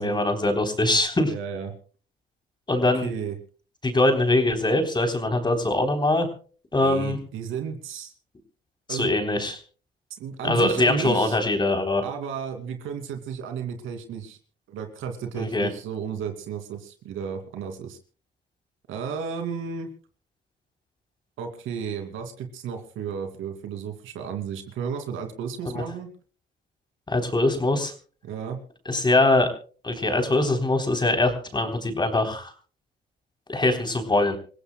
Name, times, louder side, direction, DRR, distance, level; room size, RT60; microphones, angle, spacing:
voice 1, 0.0-1.3 2.7-3.1 3.8-6.3 6.7-7.2 8.9-9.6 10.4-12.0 15.4-15.7 25.7-25.8 27.1-27.9 28.9-29.5 29.8-32.5 33.5-34.4, left 2 dB, 20° left, 5 dB, 3.6 m, -22 dB
voice 2, 1.3-1.7 3.0-3.4 6.8-8.1 8.9-9.2 10.2-11.4 12.0-14.4 14.7-18.0 18.9-19.9 21.4-26.1 28.2-28.6, right 7 dB, 85° right, 6 dB, 2.7 m, -33 dB
27.0 x 16.0 x 2.3 m, 0.39 s
cardioid pair, 90°, 20 cm